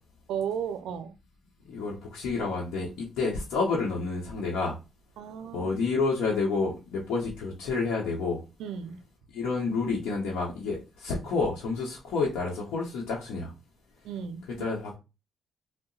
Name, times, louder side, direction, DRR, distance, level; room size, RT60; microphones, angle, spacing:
voice 1, 0.3-1.2 5.2-5.7 8.6-9.0 14.0-14.5, right 7 dB, 85° right, 0.4 m, -34 dB
voice 2, 1.7-4.8 5.5-8.4 9.3-13.5 14.6-15.0, left 4 dB, 85° left, 0.8 m, -29 dB
2.8 x 2.0 x 3.8 m
cardioid pair, 90°, 0 cm